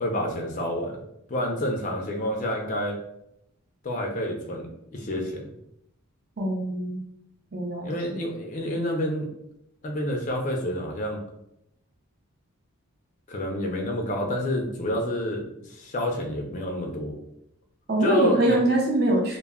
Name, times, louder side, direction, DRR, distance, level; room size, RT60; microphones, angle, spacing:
voice 1, 0.0-1.0 1.3-3.0 3.8-5.5 7.8-9.3 9.8-11.2 13.3-15.4 15.7-17.1 18.0-18.6, equal, 35° left, 1 dB, 0.3 m, -28 dB
voice 2, 6.4-7.0 7.5-8.2 17.9-19.4, right 1 dB, 45° right, 0 dB, 0.5 m, -24 dB
2.1 x 2.1 x 3.4 m, 0.79 s
head